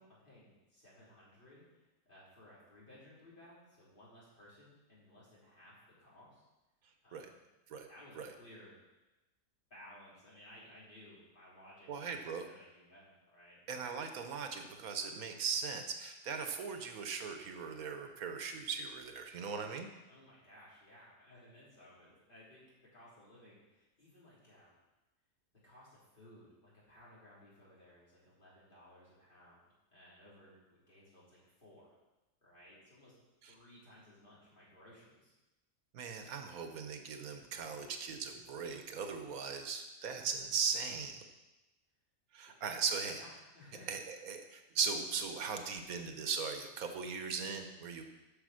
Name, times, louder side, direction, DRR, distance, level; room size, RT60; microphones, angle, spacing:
voice 1, 0.0-6.5 7.0-7.4 7.9-8.7 9.7-13.9 20.1-22.6 22.9-24.8 25.6-31.9 32.4-33.1 33.5-35.3 42.5-42.7 43.1-43.9, left 1 dB, 35° left, -8 dB, 3.8 m, -59 dB
voice 2, 11.9-12.4 13.7-19.9 33.4-33.5 35.9-41.2 42.3-43.2 43.9-48.0, right 6 dB, 80° right, 6 dB, 1.4 m, -39 dB
8.7 x 6.3 x 6.4 m, 1.0 s
omnidirectional pair, 1.5 m